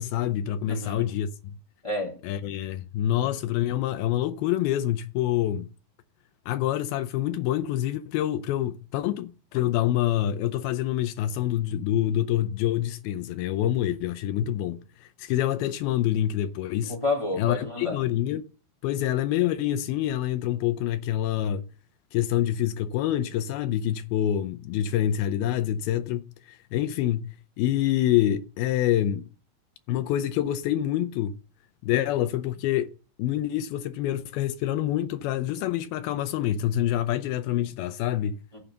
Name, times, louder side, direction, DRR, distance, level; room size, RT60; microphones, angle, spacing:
voice 1, 0.0-1.6 2.2-5.7 6.5-17.0 17.4-18.4 18.8-21.7 22.1-29.3 29.9-31.4 31.8-32.9 33.2-38.4, left 12 dB, 80° left, 2.3 m, -26 dB
voice 2, 0.7-1.1 1.8-2.2 3.1-3.3 16.9-18.0 38.5-38.6, left 2 dB, 10° left, 2.8 m, -30 dB
14.5 x 5.2 x 6.7 m
omnidirectional pair, 4.7 m